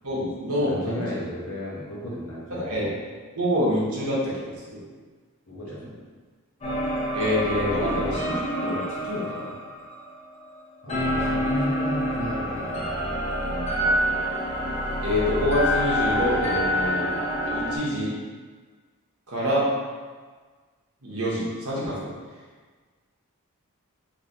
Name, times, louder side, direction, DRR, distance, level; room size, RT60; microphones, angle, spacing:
voice 1, 0.0-1.2 2.5-2.9 3.3-4.8 5.8-5.9 7.1-9.5 10.9-11.4 15.0-18.1 19.3-19.6 21.0-22.1, left 1 dB, 80° right, -6 dB, 1.0 m, -27 dB
voice 2, 0.6-2.8 5.5-5.9 10.8-13.1, equal, 60° left, -5 dB, 0.8 m, -34 dB
sound 1, 6.6-10.5 10.9-17.8, equal, 30° left, 0.6 m, -27 dB
3.2 x 2.7 x 2.7 m, 1.5 s
head